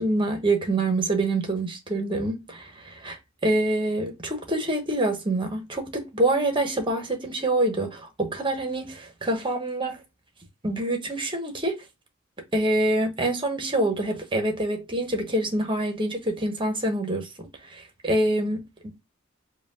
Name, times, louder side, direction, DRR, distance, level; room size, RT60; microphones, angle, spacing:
voice 1, 0.0-10.0 10.6-11.8 12.5-19.0, right 1 dB, 25° right, 1.0 m, -26 dB
4.9 x 2.3 x 3.5 m
head